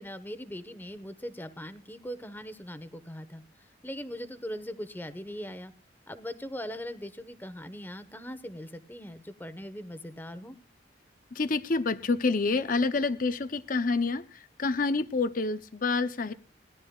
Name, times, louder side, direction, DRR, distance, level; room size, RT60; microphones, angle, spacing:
voice 1, 0.0-3.4 3.8-5.7 6.1-10.5, equal, 10° left, 11 dB, 1.1 m, -40 dB
voice 2, 11.3-16.3, left 3 dB, 45° left, 10 dB, 0.6 m, -28 dB
21.0 x 12.0 x 2.4 m, 0.37 s
head